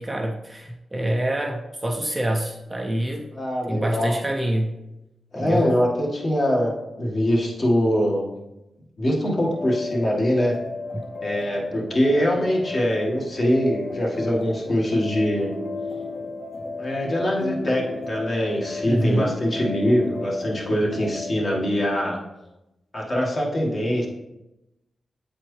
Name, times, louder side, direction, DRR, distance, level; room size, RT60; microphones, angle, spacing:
voice 1, 0.0-3.3 3.7-4.7 5.4-5.7 10.9-11.0 18.8-19.3, right 1 dB, 15° right, 2 dB, 0.5 m, -26 dB
voice 2, 3.3-4.1 5.3-6.7 7.0-8.3 9.0-10.6 11.2-15.5 16.8-22.2 22.9-24.1, equal, 40° left, -3 dB, 1.5 m, -23 dB
sound 1, 9.4-21.3, left 3 dB, 60° left, 2.0 m, -34 dB
8.0 x 4.3 x 3.1 m, 0.95 s
wide cardioid pair, 100°, 0 cm